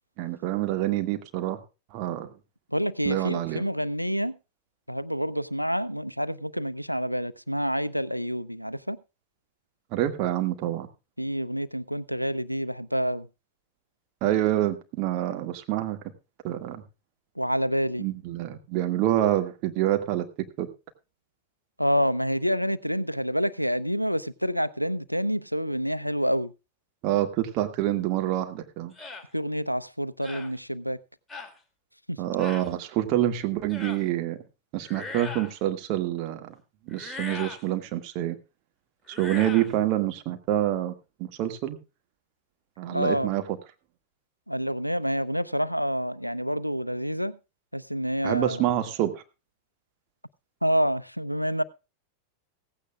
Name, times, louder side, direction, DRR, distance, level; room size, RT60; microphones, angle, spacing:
voice 1, 0.2-1.6 1.9-2.3 3.1-3.6 9.9-10.9 14.2-16.0 16.4-16.8 18.0-20.3 20.6-20.7 27.0-28.9 32.2-34.4 34.7-36.5 36.9-38.4 39.1-40.9 41.2-41.8 42.8-43.4 48.2-49.2, right 13 dB, 40° right, 1.9 m, -27 dB
voice 2, 2.7-4.4 4.9-9.0 11.2-13.3 17.4-18.1 21.8-26.5 29.3-31.0 32.1-32.2 42.9-43.3 44.5-47.4 47.7-48.6 50.6-51.6, equal, 90° left, 0.6 m, -28 dB
sound 1, 29.0-29.3 30.2-30.5 31.3-31.5 32.4-32.7 33.7-34.0 34.8-35.6 36.9-37.6 39.1-39.7, left 3 dB, 10° left, 2.5 m, -39 dB
16.0 x 15.5 x 2.3 m
figure-of-eight pair, 90°, 0 cm